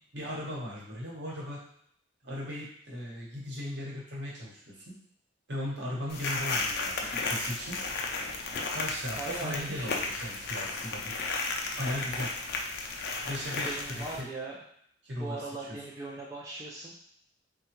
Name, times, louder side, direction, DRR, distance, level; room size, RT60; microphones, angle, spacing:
voice 1, 0.1-1.6 2.2-4.9 5.5-7.8 8.7-11.1 11.7-12.3 13.2-14.3 15.0-15.4, equal, 60° right, -4 dB, 1.0 m, -37 dB
Loopable Walk Sounf, 6.1-14.2, left 3 dB, 55° left, 0.4 m, -34 dB
voice 2, 9.2-9.9 13.6-14.6 15.2-16.9, right 2 dB, 15° right, -4 dB, 0.3 m, -39 dB
3.5 x 2.2 x 2.9 m, 0.69 s
head